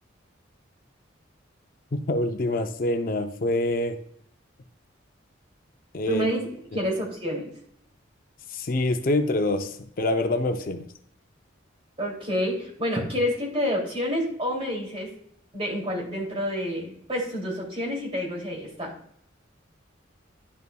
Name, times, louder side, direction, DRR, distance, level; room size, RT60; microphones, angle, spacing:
voice 1, 1.9-4.0 5.9-6.3 8.5-10.9, left 2 dB, 45° left, 7 dB, 0.5 m, -26 dB
voice 2, 6.1-6.5 6.7-7.5 12.0-15.1 15.5-18.9, equal, 30° right, -2 dB, 2.5 m, -28 dB
10.5 x 5.6 x 2.2 m, 0.68 s
head